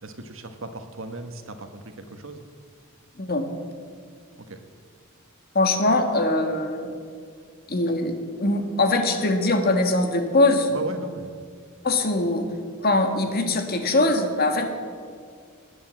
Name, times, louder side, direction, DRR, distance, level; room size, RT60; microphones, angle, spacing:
voice 1, 0.0-2.4 10.7-11.4, right 3 dB, 70° right, 7 dB, 1.4 m, -36 dB
voice 2, 5.5-7.0 7.7-10.7 11.8-12.5 12.8-14.7, left 2 dB, 45° left, 5 dB, 1.6 m, -22 dB
19.0 x 8.6 x 7.7 m, 2.1 s
head